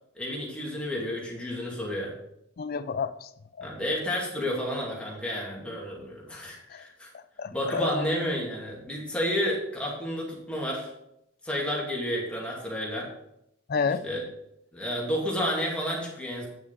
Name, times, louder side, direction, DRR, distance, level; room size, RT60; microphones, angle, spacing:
voice 1, 0.1-2.1 3.6-7.1 7.5-10.9 11.4-13.1 14.0-14.2 14.7-16.5, equal, 5° left, 2.4 m, -31 dB
voice 2, 2.6-3.3 3.6-3.7 6.7-6.8 7.1-8.1 13.7-14.1, left 5 dB, 50° left, 0.4 m, -30 dB
9.2 x 7.0 x 4.1 m
head